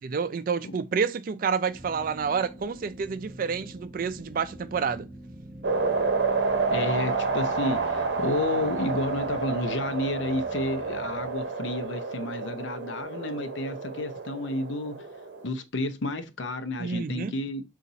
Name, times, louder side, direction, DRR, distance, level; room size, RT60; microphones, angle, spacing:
voice 1, 0.0-5.1 16.8-17.4, right 5 dB, 45° right, 0.3 m, -29 dB
sound 1, 1.7-11.3, right 1 dB, 20° left, 1.5 m, -45 dB
sound 2, 5.6-15.5, right 4 dB, 65° right, 0.7 m, -29 dB
voice 2, 6.7-15.1 15.4-17.6, left 2 dB, 75° left, 0.6 m, -31 dB
4.0 x 2.5 x 4.0 m
head